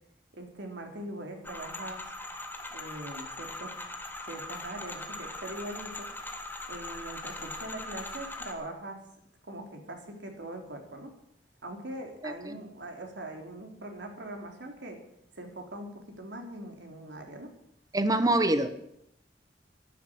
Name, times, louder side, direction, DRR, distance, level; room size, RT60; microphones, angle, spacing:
voice 1, 0.3-2.1 2.7-3.8 4.2-6.1 6.7-9.0 9.4-11.1 11.6-15.0 15.4-17.5 18.2-18.7, right 1 dB, 90° right, 3 dB, 3.3 m, -42 dB
sound 1, 1.4-8.5, left 2 dB, 10° left, 1.7 m, -40 dB
voice 2, 12.2-12.5 17.9-18.7, right 1 dB, 20° right, 10 dB, 0.9 m, -25 dB
12.5 x 11.5 x 8.7 m, 0.77 s
head